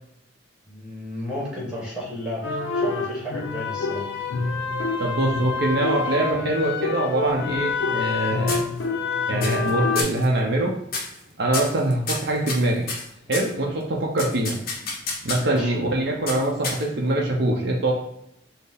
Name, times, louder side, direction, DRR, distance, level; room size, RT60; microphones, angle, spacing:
voice 1, 0.7-2.5 2.7-4.1 15.4-15.7, left 1 dB, 5° right, -5 dB, 1.1 m, -32 dB
sound 1, 2.4-10.0, left 4 dB, 80° left, 0.5 m, -26 dB
voice 2, 5.0-8.6 9.3-10.7 11.4-12.9 13.3-14.6 15.2-17.9, right 1 dB, 60° right, -1 dB, 0.5 m, -23 dB
sound 2, 7.3-8.2 8.5-9.1 9.4-9.7 10.0-10.3 10.9-11.2 11.5-13.5 14.2-15.6 16.3-17.1, left 3 dB, 50° left, 0.8 m, -30 dB
4.3 x 2.0 x 3.4 m, 0.80 s
head